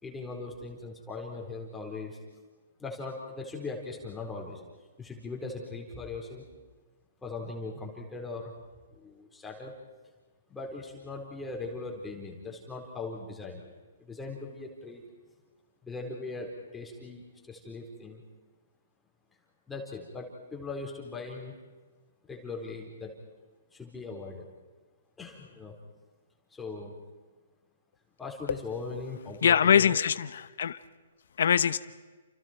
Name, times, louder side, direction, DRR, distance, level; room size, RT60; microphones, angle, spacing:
voice 1, 0.0-2.2 2.8-4.6 5.0-6.4 7.2-8.5 8.9-9.8 10.5-13.6 14.0-15.0 15.8-18.2 19.7-21.5 22.3-23.2 23.7-24.5 25.2-25.8 26.5-26.9 28.2-29.9, left 3 dB, 10° left, -1 dB, 4.4 m, -39 dB
voice 2, 29.4-30.8 31.4-31.8, left 8 dB, 70° left, 13 dB, 1.0 m, -23 dB
30.0 x 29.0 x 4.6 m, 1.3 s
hypercardioid pair, 155°, 0 cm